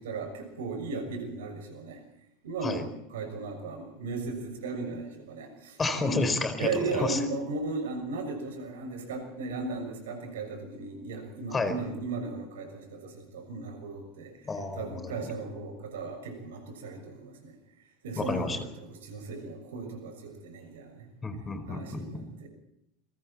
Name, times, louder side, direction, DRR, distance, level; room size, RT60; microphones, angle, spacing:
voice 1, 0.0-2.0 2.4-2.8 3.1-5.8 6.1-6.3 6.6-14.3 14.7-17.5 18.0-21.1 21.7-22.5, right 3 dB, 75° right, 6 dB, 6.4 m, -36 dB
voice 2, 5.8-7.2 11.5-11.8 14.4-15.2 18.2-18.6 21.2-22.3, left 3 dB, 20° left, 10 dB, 4.4 m, -31 dB
29.0 x 23.5 x 4.3 m, 0.81 s
figure-of-eight pair, 80°, 0 cm